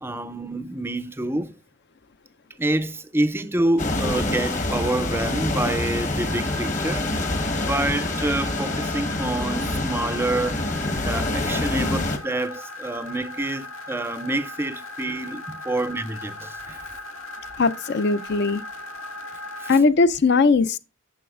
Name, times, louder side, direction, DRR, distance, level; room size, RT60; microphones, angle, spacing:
voice 1, 0.0-1.5 2.6-7.1 7.5-10.6 11.0-16.9 19.6-19.7, right 1 dB, 10° right, 0.4 m, -27 dB
sound 1, 3.8-12.2, left 2 dB, 35° left, 1.2 m, -26 dB
sound 2, 6.2-19.8, left 2 dB, 70° left, 1.6 m, -38 dB
voice 2, 17.6-18.6 19.7-20.8, left 4 dB, 50° left, 0.5 m, -19 dB
9.2 x 7.0 x 2.4 m
head